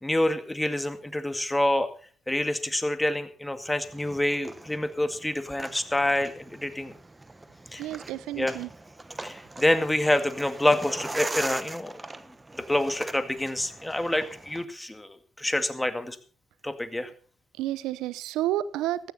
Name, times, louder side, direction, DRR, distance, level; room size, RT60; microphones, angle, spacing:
voice 1, 0.0-1.9 2.3-6.9 7.7-7.9 8.4-8.6 9.2-12.0 12.5-16.2 16.6-17.1, left 1 dB, 10° left, 9 dB, 2.1 m, -27 dB
sound 1, 3.8-14.7, right 2 dB, 20° right, 1.1 m, -41 dB
voice 2, 7.8-8.7 17.6-19.1, right 14 dB, 80° right, 18 dB, 0.7 m, -30 dB
15.0 x 14.0 x 4.2 m, 0.43 s
hypercardioid pair, 50°, 0 cm